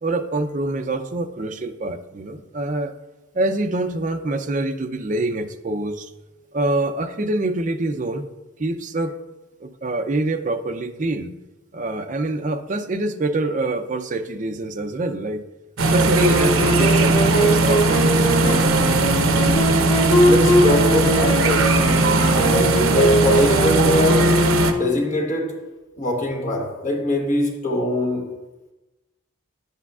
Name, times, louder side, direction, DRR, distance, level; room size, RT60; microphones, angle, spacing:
voice 1, 0.0-2.9 3.3-6.1 6.5-8.2 8.6-9.2 9.6-11.4 11.7-15.4 15.9-18.3, right 2 dB, 35° right, 0.5 m, -25 dB
sound 1, 15.8-24.7, right 2 dB, 80° right, 0.7 m, -18 dB
Wind instrument woodwind instrument, 16.2-25.2, equal, 65° left, 2.4 m, -21 dB
voice 2, 20.2-21.8 22.3-24.4 24.8-25.6 26.0-28.2, left 1 dB, 35° left, 1.0 m, -22 dB
10.0 x 8.2 x 2.4 m
head